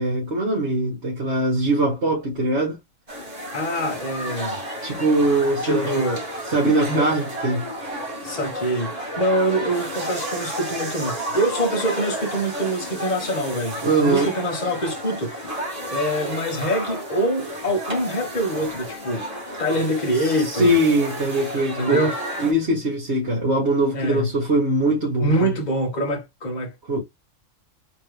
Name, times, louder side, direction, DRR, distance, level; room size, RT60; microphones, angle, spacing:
voice 1, 0.0-2.8 4.8-5.9 6.5-7.7 13.8-14.3 20.2-22.1 22.4-25.5 26.9-27.0, right 1 dB, 55° right, 1.8 m, -21 dB
sound 1, 3.1-22.5, right 1 dB, 30° right, 1.6 m, -32 dB
voice 2, 3.5-4.6 5.6-6.2 6.9-7.1 8.2-15.4 15.9-19.3 19.6-20.7 21.7-22.1 23.9-24.3 25.2-26.7, right 1 dB, 35° left, 1.4 m, -24 dB
3.7 x 3.2 x 3.3 m
omnidirectional pair, 1.3 m